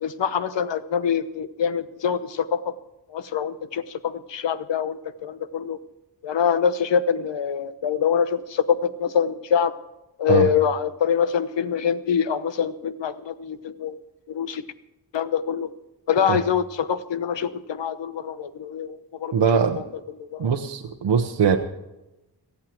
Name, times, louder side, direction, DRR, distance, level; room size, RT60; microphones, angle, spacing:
voice 1, 0.0-2.6 3.1-5.8 6.2-9.7 10.2-14.0 14.3-14.6 15.1-15.7 16.1-19.3 20.2-20.5, left 7 dB, 80° left, 13 dB, 1.0 m, -24 dB
voice 2, 19.3-19.8 20.4-21.6, right 7 dB, 75° right, 4 dB, 1.0 m, -21 dB
18.0 x 14.0 x 4.5 m, 0.98 s
wide cardioid pair, 90°, 43 cm